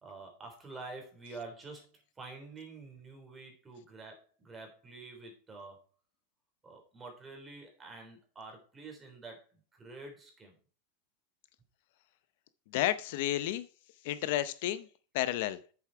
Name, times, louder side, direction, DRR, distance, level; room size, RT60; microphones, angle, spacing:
voice 1, 0.0-5.8 6.6-9.5 9.8-10.6, right 3 dB, 15° right, 1 dB, 3.5 m, -48 dB
voice 2, 12.7-13.7 14.0-14.9 15.1-15.6, left 13 dB, 60° left, 14 dB, 0.6 m, -31 dB
8.3 x 7.2 x 4.5 m, 0.38 s
supercardioid pair, 145°, 0 cm